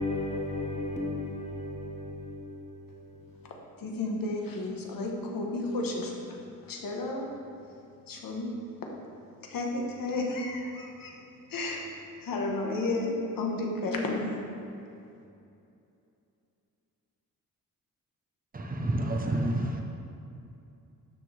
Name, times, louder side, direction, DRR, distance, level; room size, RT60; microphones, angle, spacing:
voice 1, 0.0-3.0, left 2 dB, 20° left, 1.3 m, -34 dB
voice 2, 3.8-7.3 8.1-8.5 9.4-11.1 11.5-11.9 12.2-14.4, left 2 dB, 80° left, 1.4 m, -32 dB
voice 3, 18.5-19.8, right 1 dB, 25° right, 1.0 m, -29 dB
12.5 x 6.5 x 3.5 m
wide cardioid pair, 140°, 34 cm